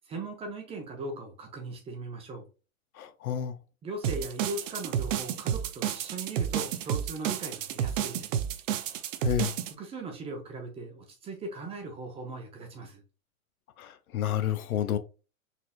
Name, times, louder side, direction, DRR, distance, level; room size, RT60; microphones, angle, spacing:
voice 1, 0.0-2.5 3.8-8.4 9.8-13.0, right 2 dB, 15° right, 0.5 m, -39 dB
voice 2, 3.0-3.6 9.2-9.5 13.8-15.0, left 10 dB, 80° left, 0.6 m, -30 dB
sound 1, 4.0-9.7, right 9 dB, 60° right, 0.5 m, -31 dB
4.1 x 2.6 x 2.3 m
hypercardioid pair, 120°, 43 cm